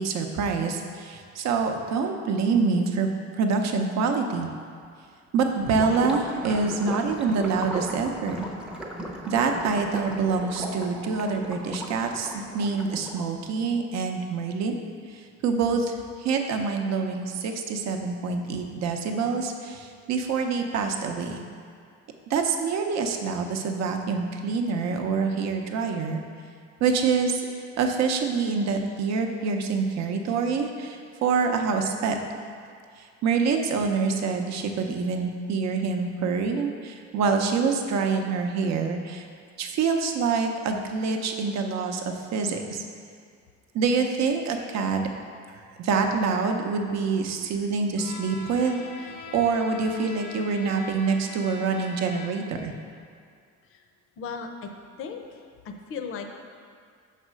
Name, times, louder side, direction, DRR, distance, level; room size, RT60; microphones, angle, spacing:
voice 1, 0.0-3.1 3.4-4.5 5.3-8.5 9.3-14.7 15.4-21.4 22.3-26.2 26.8-27.4 27.8-32.2 33.2-39.3 39.6-42.8 43.7-45.1 45.8-52.7, right 5 dB, 65° right, 4 dB, 0.7 m, -26 dB
Gurgling / Liquid, 5.6-13.3, equal, 5° right, 0.5 m, -37 dB
Bowed string instrument, 47.9-52.6, left 4 dB, 85° left, 0.9 m, -42 dB
voice 2, 54.2-54.7 55.0-55.2 55.6-56.3, left 5 dB, 45° left, 4 dB, 0.5 m, -35 dB
5.5 x 4.2 x 6.1 m, 2.2 s
cardioid pair, 155°, 29 cm